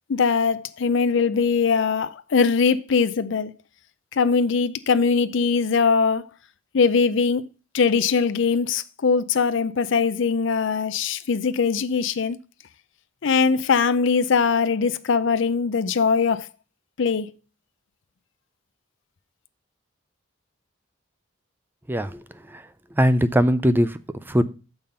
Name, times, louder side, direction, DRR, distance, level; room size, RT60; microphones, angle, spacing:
voice 1, 0.1-3.5 4.1-6.2 6.7-7.5 7.7-12.4 13.2-16.5 17.0-17.3, left 5 dB, 65° left, 0.5 m, -21 dB
voice 2, 21.9-22.2 22.5-22.6 23.0-24.0 24.3-24.4, equal, 10° right, 0.4 m, -20 dB
6.8 x 5.6 x 5.4 m
head